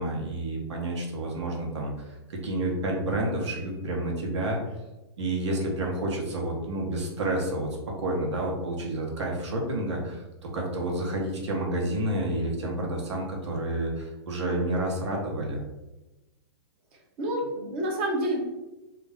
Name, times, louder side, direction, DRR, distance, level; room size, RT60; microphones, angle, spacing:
voice 1, 0.0-4.6 5.2-7.7 8.0-15.6, right 1 dB, 90° right, 0 dB, 0.9 m, -29 dB
voice 2, 17.2-18.4, right 1 dB, 20° right, 0 dB, 0.4 m, -28 dB
2.4 x 2.2 x 3.3 m, 1.1 s
hypercardioid pair, 180°, 14 cm